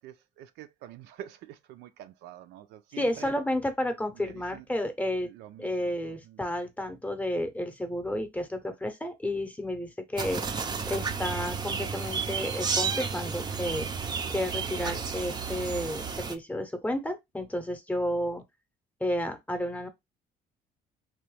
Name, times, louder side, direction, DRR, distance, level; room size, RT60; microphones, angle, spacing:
voice 1, 0.0-3.3 4.2-4.6 5.2-6.4, right 12 dB, 80° right, 0.4 m, -47 dB
voice 2, 3.0-5.3 5.6-10.4 10.9-13.9 14.3-18.4 19.0-19.9, left 1 dB, 10° left, 0.7 m, -31 dB
sound 1, 10.2-16.3, right 5 dB, 25° right, 0.4 m, -32 dB
3.0 x 2.2 x 3.2 m
cardioid pair, 110°, 17 cm